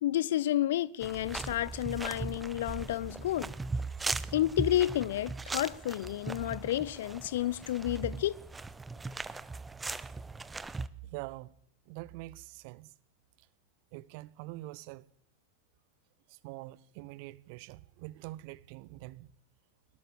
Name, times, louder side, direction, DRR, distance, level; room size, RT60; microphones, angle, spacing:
voice 1, 0.0-3.5 4.3-8.4, left 13 dB, 55° left, 0.9 m, -30 dB
sound 1, 1.0-10.9, right 3 dB, 10° right, 1.0 m, -39 dB
voice 2, 11.0-11.5 11.9-12.9 13.9-15.1 16.3-19.3, right 19 dB, 45° right, 1.0 m, -44 dB
22.0 x 19.0 x 7.7 m
figure-of-eight pair, 90°, 0 cm